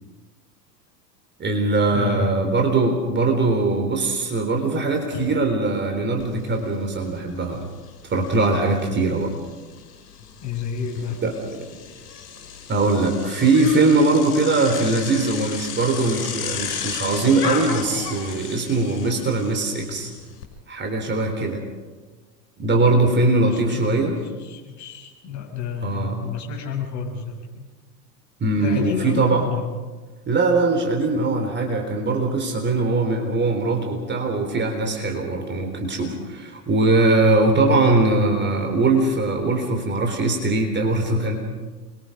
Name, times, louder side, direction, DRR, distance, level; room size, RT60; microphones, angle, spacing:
voice 1, 1.4-7.6 8.0-9.3 11.2-11.7 12.7-20.1 20.7-21.6 22.6-24.2 25.8-26.2 28.4-29.4 30.3-41.4, right 2 dB, 20° right, 4 dB, 3.8 m, -21 dB
voice 2, 1.9-2.4 5.1-5.3 10.4-11.2 23.4-27.7 28.6-29.7 37.6-37.8, left 6 dB, 35° left, 0 dB, 6.5 m, -30 dB
Bicycle, 6.2-6.3 6.7-20.4, left 7 dB, 65° left, 5.8 m, -35 dB
28.0 x 23.5 x 5.3 m, 1.3 s
figure-of-eight pair, 85°, 49 cm